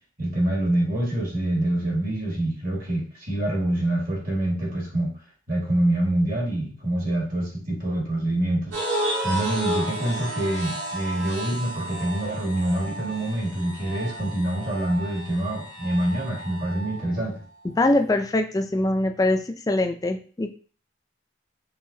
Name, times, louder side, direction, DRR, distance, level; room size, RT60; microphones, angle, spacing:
voice 1, 0.2-5.1 5.5-8.7 9.2-17.4, right 1 dB, 50° right, -3 dB, 1.8 m, -26 dB
sound 1, 8.7-17.1, right 1 dB, 90° right, 1.5 m, -32 dB
voice 2, 17.6-20.5, left 2 dB, 20° left, 6 dB, 0.3 m, -23 dB
5.5 x 2.9 x 2.7 m, 0.41 s
head